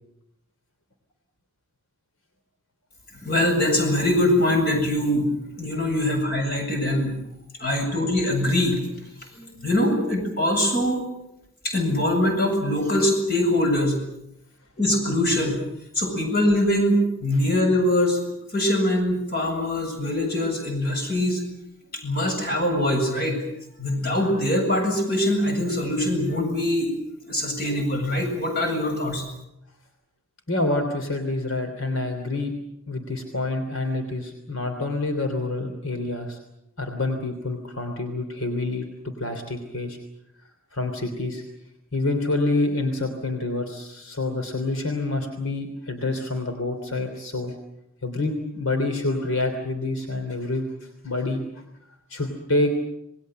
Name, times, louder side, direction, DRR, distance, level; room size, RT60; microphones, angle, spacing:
voice 1, 3.2-7.1 7.6-8.8 9.3-11.0 11.6-14.0 14.8-15.6 15.9-18.2 18.5-21.4 21.9-23.4 23.8-26.9 27.3-29.2, left 1 dB, 50° left, 3 dB, 7.7 m, -23 dB
voice 2, 30.5-32.5 32.9-36.4 36.8-40.0 40.7-41.4 41.9-47.5 48.0-51.6 52.1-52.7, left 2 dB, 80° left, 5 dB, 3.2 m, -27 dB
27.5 x 20.5 x 7.8 m, 0.83 s
head